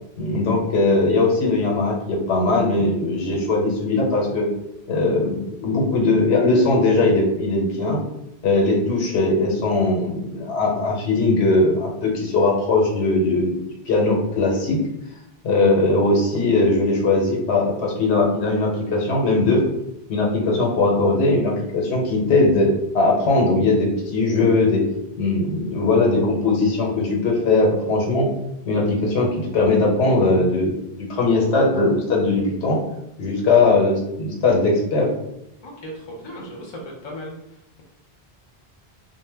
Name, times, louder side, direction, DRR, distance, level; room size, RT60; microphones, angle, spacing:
voice 1, 0.2-4.5 4.9-8.0 8.4-13.6 13.8-14.8 15.4-19.6 20.1-24.8 25.2-28.3 28.7-30.8 31.1-32.8 33.2-35.1, left 2 dB, 90° left, -1 dB, 0.9 m, -19 dB
voice 2, 35.6-37.8, equal, 35° left, -1 dB, 0.5 m, -37 dB
2.1 x 2.1 x 3.3 m, 0.82 s
omnidirectional pair, 1.1 m